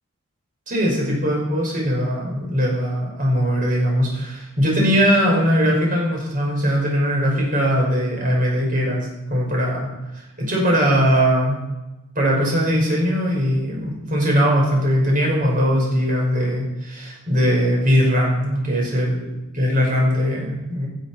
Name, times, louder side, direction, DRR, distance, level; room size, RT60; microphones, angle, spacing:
voice 1, 0.7-11.6 12.1-19.2 19.6-20.9, equal, 40° right, -2 dB, 5.9 m, -20 dB
18.0 x 9.9 x 5.9 m, 1.0 s
head